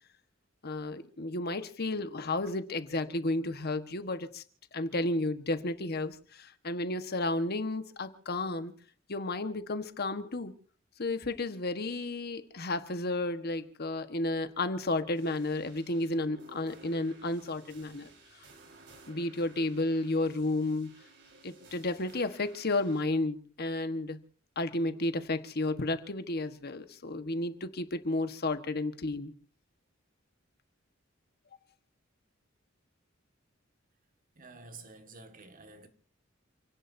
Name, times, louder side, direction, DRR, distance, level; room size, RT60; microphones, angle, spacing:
voice 1, 0.6-4.4 4.7-8.7 9.1-10.5 11.0-18.1 19.1-20.9 21.4-24.2 24.6-29.3, left 2 dB, 50° left, 1.4 m, -32 dB
sound 1, 15.1-23.0, right 3 dB, 60° right, 4.7 m, -57 dB
voice 2, 34.4-35.9, right 3 dB, 45° right, 1.9 m, -50 dB
29.0 x 17.5 x 2.7 m
head